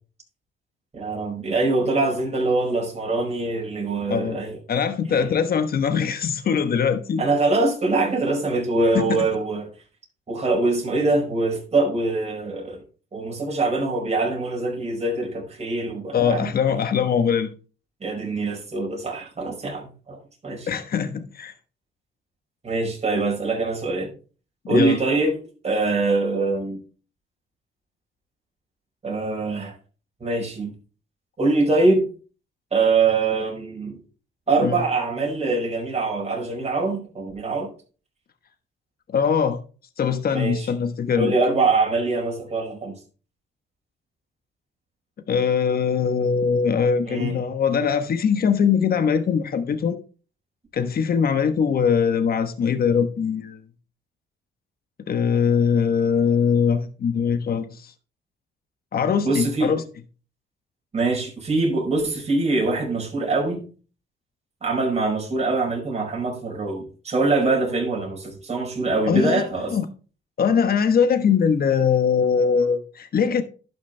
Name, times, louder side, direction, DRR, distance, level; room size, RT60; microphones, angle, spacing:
voice 1, 0.9-4.6 5.1-5.3 7.2-9.7 10.3-12.8 13.1-16.8 18.0-20.7 22.6-24.1 24.7-25.4 25.6-26.8 29.0-29.7 30.2-30.7 31.4-32.1 32.7-34.0 34.5-37.7 40.3-40.7 41.1-43.0 47.1-47.4 59.2-59.7 60.9-63.6 64.6-69.7, right 3 dB, 35° right, 4.8 m, -23 dB
voice 2, 4.1-4.4 4.7-7.2 8.9-9.2 16.1-17.5 20.7-21.5 24.6-25.0 34.6-34.8 39.1-39.6 40.0-41.3 45.3-50.0 50.7-53.6 55.1-57.9 58.9-59.8 69.1-69.4 69.7-69.9 70.4-73.4, left 6 dB, 50° left, 1.2 m, -21 dB
11.5 x 6.3 x 3.3 m
cardioid pair, 90°, 20 cm